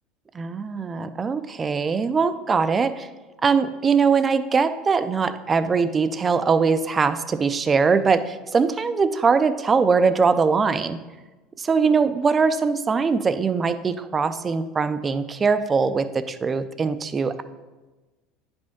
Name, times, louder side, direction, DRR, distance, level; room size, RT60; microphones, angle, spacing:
voice 1, 0.3-3.1 3.4-11.0 11.6-17.4, right 5 dB, 20° right, 12 dB, 0.3 m, -21 dB
9.5 x 5.2 x 3.5 m, 1.2 s
cardioid pair, 145°, 0 cm